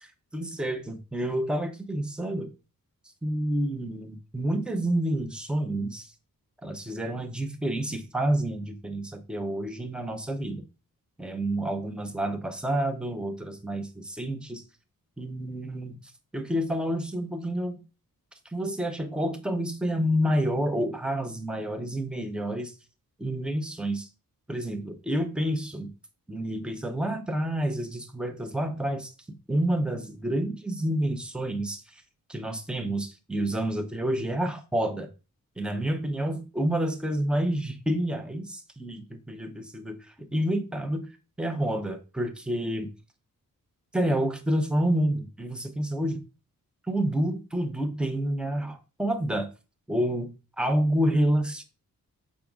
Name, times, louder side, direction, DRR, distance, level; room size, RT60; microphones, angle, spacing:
voice 1, 0.3-2.5 3.2-6.1 6.6-10.6 11.2-14.6 15.2-16.0 16.3-17.8 18.5-22.7 23.2-24.1 24.5-25.9 26.3-29.1 29.5-32.0 32.3-35.1 35.6-41.1 41.4-42.9 43.9-46.2 46.8-49.5 49.9-50.3 50.6-51.6, right 1 dB, 5° right, 0.8 m, -29 dB
7.5 x 5.0 x 3.6 m
wide cardioid pair, 155°, 35 cm